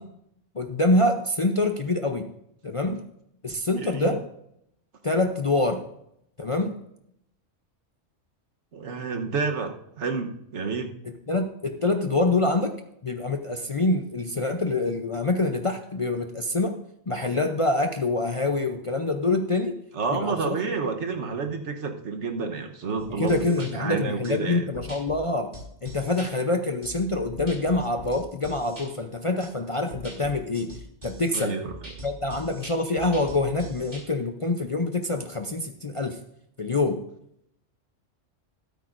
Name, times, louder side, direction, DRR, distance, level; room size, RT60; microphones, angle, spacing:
voice 1, 0.5-2.3 2.6-3.0 3.4-4.3 5.0-5.8 6.4-6.8 11.3-12.8 13.0-16.8 17.1-19.8 20.1-20.6 23.1-25.5 25.8-30.7 31.0-31.6 32.0-36.2 36.6-37.0, left 2 dB, 35° left, 4 dB, 0.5 m, -25 dB
voice 2, 3.8-4.2 8.7-10.9 19.9-24.7 31.3-31.9, right 4 dB, 70° right, 5 dB, 1.3 m, -30 dB
sound 1, 23.0-23.7 24.2-24.3 24.7-25.2 25.5-26.3 26.8-28.9 29.4-29.5 29.9-34.0, equal, 40° right, 5.1 m, -42 dB
13.0 x 13.0 x 2.6 m, 0.76 s
omnidirectional pair, 1.3 m